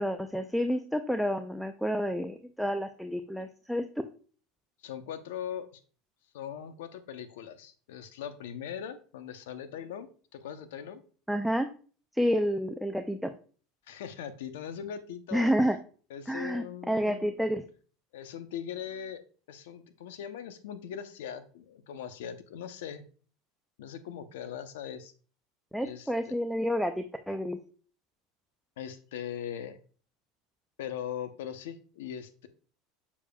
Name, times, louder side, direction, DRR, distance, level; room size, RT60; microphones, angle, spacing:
voice 1, 0.0-4.0 11.3-11.7 12.1-13.3 15.3-15.8 16.3-17.6 25.7-27.6, equal, ahead, 6 dB, 0.5 m, -29 dB
voice 2, 4.8-5.8 6.3-11.0 13.9-15.5 16.1-17.4 18.1-19.2 19.5-23.0 23.8-25.1 25.8-26.3 28.8-29.8 30.8-32.5, left 9 dB, 85° left, 10 dB, 0.8 m, -40 dB
7.1 x 6.8 x 2.3 m, 0.40 s
supercardioid pair, 110°, 0 cm